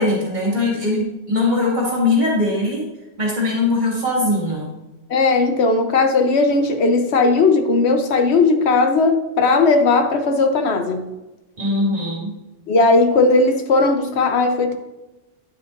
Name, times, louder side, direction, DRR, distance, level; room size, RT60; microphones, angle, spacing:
voice 1, 0.0-2.9 3.2-4.7 11.6-12.3, left 2 dB, 40° right, -3 dB, 2.3 m, -20 dB
voice 2, 5.1-11.0 12.7-14.8, left 3 dB, 65° left, 6 dB, 1.1 m, -17 dB
9.5 x 7.3 x 2.6 m, 1.0 s
omnidirectional pair, 1.2 m